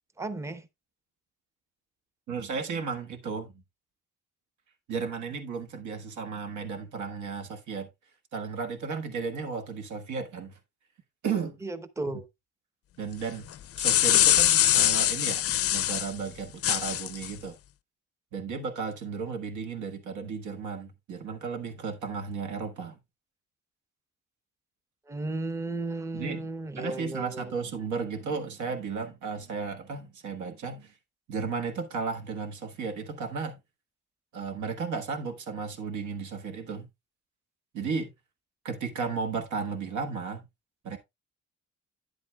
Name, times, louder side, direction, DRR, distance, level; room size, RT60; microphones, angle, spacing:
voice 1, 0.2-0.7 11.6-12.3 25.1-27.5, right 2 dB, 10° right, 0.7 m, -34 dB
voice 2, 2.3-3.5 4.9-7.9 8.3-10.5 11.2-11.6 13.0-13.5 13.8-17.6 18.3-23.0 26.1-26.5 26.8-30.9 31.3-33.6 34.3-36.9 37.7-38.1 38.6-40.4 40.8-41.0, right 5 dB, 75° right, 1.5 m, -34 dB
sound 1, 13.5-16.1 16.6-17.3, left 12 dB, 50° left, 0.5 m, -23 dB
9.7 x 8.1 x 2.3 m
cardioid pair, 90°, 30 cm